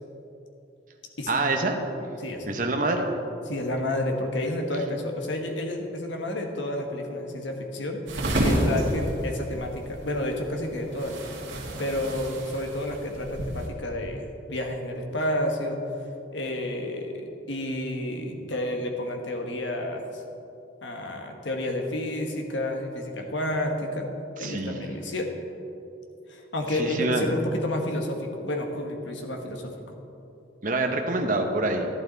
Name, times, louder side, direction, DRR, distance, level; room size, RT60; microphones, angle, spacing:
voice 1, 1.3-1.8 2.4-3.1 24.4-24.9 26.8-27.3 30.6-31.9, right 2 dB, 45° right, 3 dB, 1.0 m, -26 dB
voice 2, 2.2-2.5 3.4-8.0 8.4-11.3 11.8-15.8 16.3-20.2 20.8-24.1 24.4-25.3 26.3-29.7, left 1 dB, 80° left, 3 dB, 1.3 m, -30 dB
sound 1, 8.1-13.7, equal, 85° right, 2.0 m, -30 dB
11.5 x 11.5 x 4.0 m, 2.8 s
head